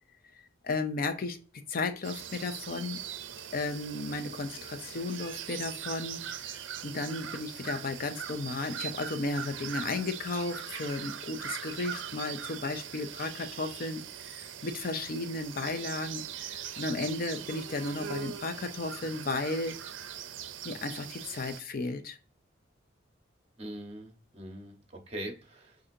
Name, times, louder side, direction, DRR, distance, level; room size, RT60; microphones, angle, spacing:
voice 1, 0.3-1.4 1.7-3.0 3.5-19.8 20.6-22.2, left 3 dB, 50° left, 9 dB, 0.5 m, -34 dB
sound 1, 2.0-21.6, right 9 dB, 80° right, 0.5 m, -41 dB
voice 2, 23.6-25.8, right 1 dB, 35° right, 3 dB, 1.0 m, -42 dB
6.5 x 2.6 x 2.6 m, 0.35 s
head